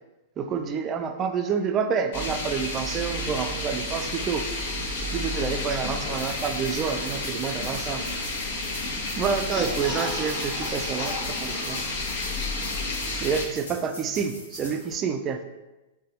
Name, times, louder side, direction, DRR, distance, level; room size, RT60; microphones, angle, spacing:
voice 1, 0.4-4.5 5.1-8.0 9.1-11.8 13.2-15.4, right 6 dB, 30° right, 7 dB, 0.3 m, -28 dB
sound 1, 2.1-13.5, left 2 dB, 60° left, 0.7 m, -31 dB
sound 2, 6.1-14.9, left 1 dB, 85° left, 1.1 m, -43 dB
sound 3, 9.5-12.4 12.7-12.8 13.1-13.2, left 1 dB, 25° left, 1.1 m, -36 dB
3.9 x 2.2 x 2.7 m, 1.0 s
hypercardioid pair, 105°, 0 cm